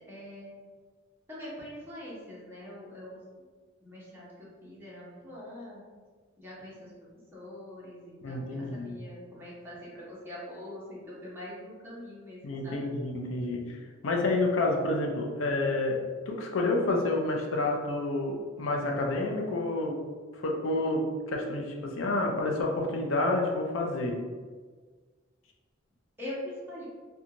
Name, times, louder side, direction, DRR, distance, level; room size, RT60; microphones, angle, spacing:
voice 1, 0.1-0.5 1.3-3.2 3.8-5.8 6.4-12.9 26.2-26.8, left 1 dB, 10° right, -8 dB, 0.8 m, -43 dB
voice 2, 8.2-9.0 12.4-20.0 20.4-24.2, left 2 dB, 75° left, 1 dB, 0.5 m, -29 dB
2.5 x 2.3 x 2.8 m, 1.5 s
head